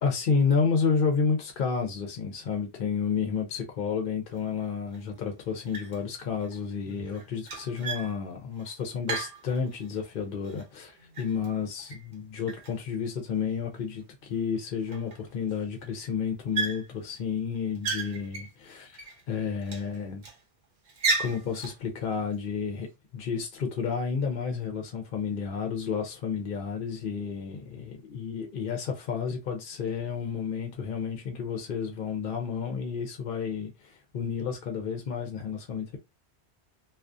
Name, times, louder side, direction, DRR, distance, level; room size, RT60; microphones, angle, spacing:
voice 1, 0.0-20.2 21.2-22.9 23.1-36.0, left 6 dB, 60° left, 0.7 m, -31 dB
sound 1, 4.3-4.4 4.9-5.3 5.6-6.1 6.4-10.1 10.4-12.2 12.4-13.4 14.0-14.1 14.3-14.4 14.8-15.5 15.8-16.1 16.5-17.2 17.5-19.2 19.6-20.4 20.8-21.8, right 4 dB, 50° right, 0.8 m, -35 dB
2.3 x 2.3 x 2.5 m
omnidirectional pair, 1.1 m